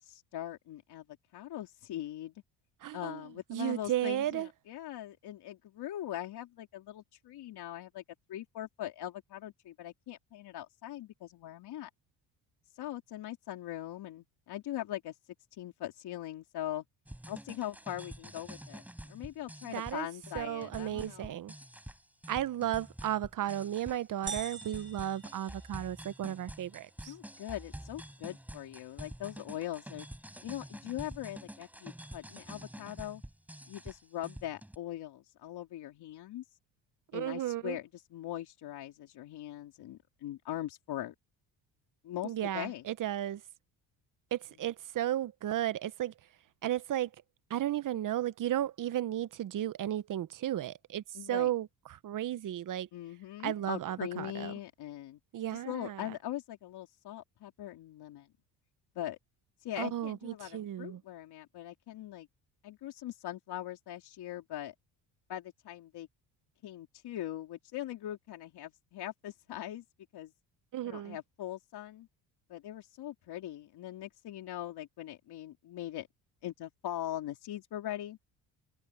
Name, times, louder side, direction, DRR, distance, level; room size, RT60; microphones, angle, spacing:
voice 1, 0.0-1.1 1.3-2.3 2.9-8.0 8.3-11.9 12.8-15.1 15.6-16.8 17.3-21.4 27.1-30.1 30.4-33.2 33.7-36.4 37.1-41.1 42.0-42.8 51.1-51.5 52.9-55.2 55.7-58.3 59.0-59.2 59.6-62.3 62.6-64.7 65.3-66.1 66.6-69.8 70.1-70.3 70.8-72.1 72.5-76.1 76.4-78.2, left 13 dB, 65° left, 3.6 m, -41 dB
voice 2, 2.8-3.2 3.5-4.5 19.7-20.1 20.3-21.5 22.3-27.1 37.1-37.8 42.2-43.4 44.3-46.1 46.6-47.1 47.5-52.9 53.4-54.5 55.3-56.1 59.8-61.0 70.7-71.2, right 12 dB, 50° right, 0.9 m, -34 dB
sound 1, 17.1-34.8, right 1 dB, 5° right, 6.3 m, -48 dB
sound 2, 24.3-26.2, right 5 dB, 25° right, 2.4 m, -43 dB
supercardioid pair, 90°, 42 cm